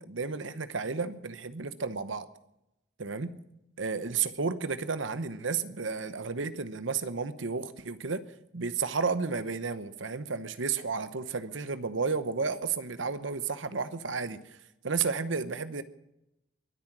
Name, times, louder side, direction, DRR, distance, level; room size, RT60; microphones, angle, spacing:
voice 1, 0.0-2.3 3.0-3.3 3.8-8.2 8.5-14.4 14.8-15.8, right 5 dB, 80° right, 13 dB, 1.0 m, -32 dB
22.5 x 8.9 x 6.0 m, 0.88 s
head